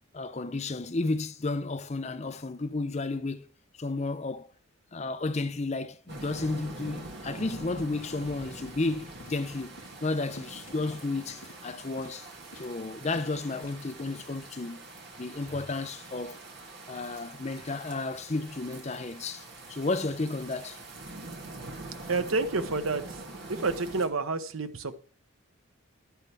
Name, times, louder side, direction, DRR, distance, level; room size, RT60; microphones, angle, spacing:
voice 1, 0.1-3.5 3.8-4.5 4.9-12.3 12.5-14.9 15.2-16.4 16.9-20.8, left 3 dB, 30° left, 0.6 m, -32 dB
sound 1, 6.1-24.1, right 2 dB, 50° right, 2.4 m, -44 dB
sound 2, 9.2-9.4 9.8-10.0 10.3-11.1 11.4-11.7 12.0-12.2 12.5-12.8 13.1-13.3 13.6-13.9 14.2-14.3, left 1 dB, 90° left, 2.5 m, -50 dB
voice 2, 22.0-23.2 23.5-24.9, right 3 dB, 85° right, 1.0 m, -29 dB
11.0 x 10.5 x 3.5 m
head